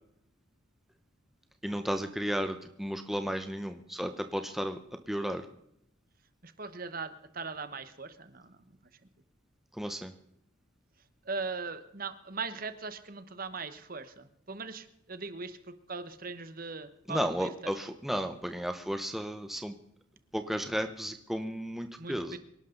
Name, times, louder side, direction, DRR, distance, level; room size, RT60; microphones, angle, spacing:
voice 1, 1.6-5.4 9.8-10.1 17.1-19.8 20.3-22.4, equal, ahead, 7 dB, 0.9 m, -33 dB
voice 2, 6.4-8.8 11.2-17.8 22.0-22.4, right 4 dB, 45° right, 11 dB, 1.2 m, -40 dB
25.0 x 11.5 x 4.0 m, 0.76 s
head